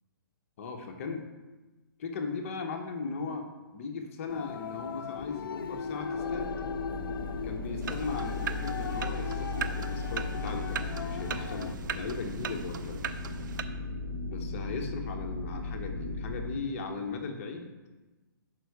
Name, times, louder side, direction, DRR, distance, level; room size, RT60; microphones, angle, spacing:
voice 1, 0.6-1.3 2.0-6.5 7.4-13.0 14.3-17.7, left 4 dB, 40° left, 4 dB, 0.8 m, -37 dB
sound 1, 4.3-11.7, left 6 dB, 75° left, 0.5 m, -38 dB
sound 2, 6.1-16.6, left 2 dB, 5° left, 1.2 m, -37 dB
sound 3, 7.8-13.6, right 7 dB, 60° right, 0.4 m, -39 dB
6.0 x 5.2 x 4.6 m, 1.2 s
hypercardioid pair, 165°, 12 cm